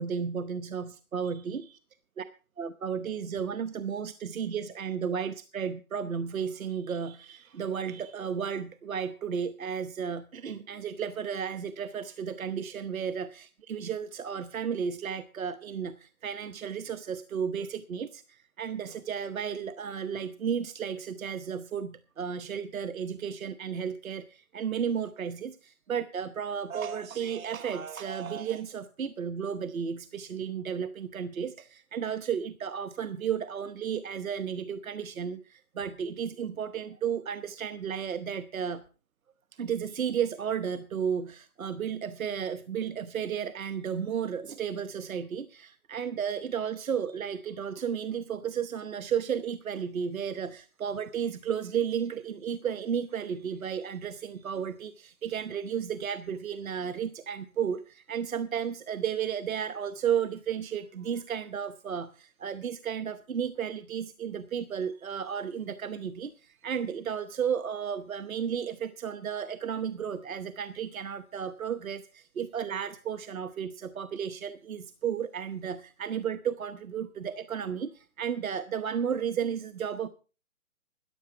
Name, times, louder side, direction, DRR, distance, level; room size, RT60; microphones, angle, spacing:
voice 1, 0.0-1.8 2.2-2.3 2.6-38.8 39.6-80.1, right 7 dB, 70° right, 13 dB, 1.0 m, -33 dB
14.0 x 10.0 x 4.8 m, 0.34 s
hypercardioid pair, 170°, 44 cm